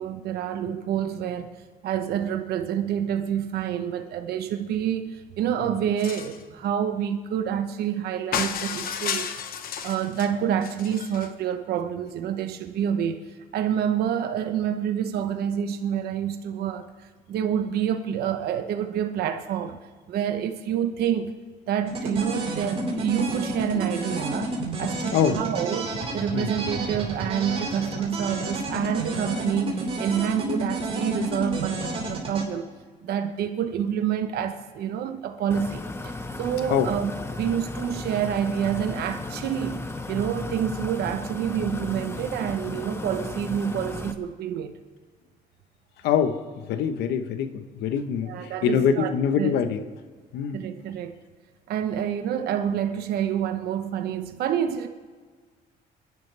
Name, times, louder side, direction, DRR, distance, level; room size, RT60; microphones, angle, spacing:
voice 1, 0.0-9.3 9.8-16.9 17.3-19.8 20.1-21.3 21.7-32.7 33.0-44.8 48.2-49.6 50.5-51.2 51.7-54.9, right 9 dB, 70° right, 1.0 m, -28 dB
sound 1, 6.0-6.4 8.3-10.3 10.6-11.3, left 8 dB, 60° left, 1.1 m, -32 dB
sound 2, 21.9-32.4, right 1 dB, 35° right, 4.4 m, -30 dB
sound 3, 35.5-44.1, left 2 dB, 15° left, 1.0 m, -35 dB
voice 2, 46.0-49.8 50.3-50.6, left 7 dB, 80° left, 1.1 m, -24 dB
28.5 x 11.0 x 3.4 m
cardioid pair, 110°, 17 cm